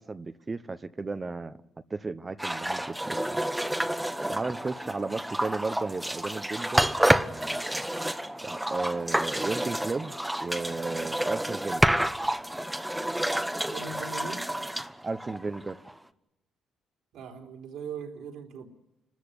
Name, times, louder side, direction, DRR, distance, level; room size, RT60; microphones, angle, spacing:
voice 1, 0.0-1.6 1.9-3.5 4.3-7.0 7.3-7.6 8.4-11.8 15.0-15.8, right 3 dB, 25° right, 1.0 m, -34 dB
sound 1, 2.4-15.9, right 1 dB, 5° right, 1.1 m, -29 dB
voice 2, 13.7-14.4 17.1-18.7, right 5 dB, 80° right, 4.1 m, -40 dB
29.5 x 13.5 x 9.9 m
cardioid pair, 90°, 0 cm